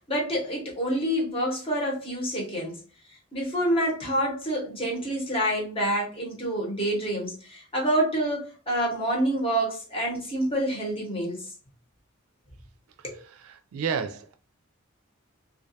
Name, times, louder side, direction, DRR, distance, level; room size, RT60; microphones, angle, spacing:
voice 1, 0.1-2.8 3.3-11.5 13.0-13.2, right 1 dB, 25° left, 0.9 m, -27 dB
voice 2, 13.3-14.3, right 6 dB, 85° right, 0.3 m, -31 dB
2.4 x 2.2 x 2.7 m
head